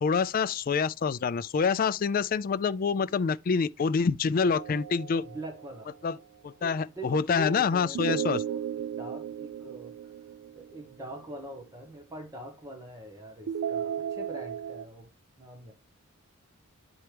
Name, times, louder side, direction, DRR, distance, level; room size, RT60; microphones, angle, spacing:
voice 1, 0.0-5.2 6.0-6.2 6.4-8.4, left 5 dB, 40° left, 0.3 m, -26 dB
sound 1, 4.4-6.0 8.0-11.1 13.5-14.9, right 9 dB, 75° right, 0.3 m, -35 dB
voice 2, 5.2-5.9 6.6-10.1 10.6-15.1 15.4-15.7, equal, 15° right, 1.1 m, -42 dB
9.6 x 4.4 x 3.4 m
head